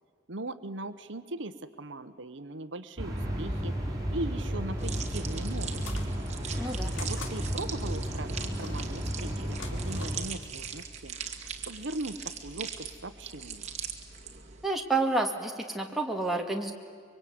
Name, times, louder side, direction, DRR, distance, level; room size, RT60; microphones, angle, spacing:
voice 1, 0.3-6.2 7.0-11.2 11.7-13.7, right 2 dB, 65° right, 11 dB, 1.1 m, -39 dB
sound 1, 3.0-10.2, equal, 20° right, 6.1 m, -33 dB
sound 2, 4.8-14.7, right 7 dB, 35° right, 2.3 m, -41 dB
sound 3, 5.7-6.1 6.9-7.4 8.4-8.9 9.5-10.2, left 4 dB, 80° left, 3.2 m, -44 dB
voice 2, 6.6-6.9 14.6-16.7, right 2 dB, ahead, 1 dB, 2.2 m, -29 dB
25.0 x 23.5 x 9.5 m, 2.1 s
head